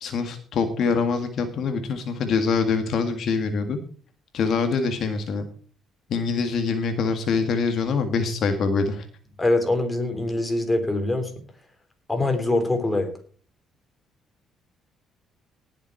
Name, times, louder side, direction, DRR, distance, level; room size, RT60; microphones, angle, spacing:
voice 1, 0.0-3.8 4.3-5.5 6.1-9.1, left 5 dB, 55° left, 6 dB, 1.8 m, -24 dB
voice 2, 9.4-11.3 12.1-13.1, left 2 dB, 10° left, 5 dB, 3.5 m, -23 dB
19.0 x 7.2 x 4.6 m, 0.41 s
cardioid pair, 135°, 0 cm